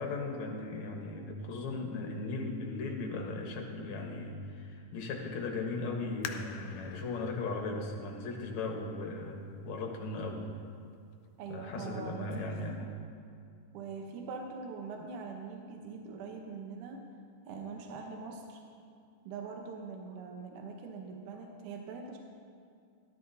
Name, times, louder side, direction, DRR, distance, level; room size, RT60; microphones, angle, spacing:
voice 1, 0.0-10.5 11.5-12.9, left 3 dB, 65° left, 1 dB, 2.3 m, -37 dB
sound 1, 6.2-9.6 10.2-10.3 10.9-11.3 11.7-11.8, left 8 dB, 85° left, 2.3 m, -47 dB
voice 2, 11.4-12.6 13.7-17.0 17.5-18.6 19.2-22.2, right 4 dB, 75° right, 2 dB, 2.3 m, -43 dB
17.0 x 12.5 x 2.7 m, 2.3 s
omnidirectional pair, 3.7 m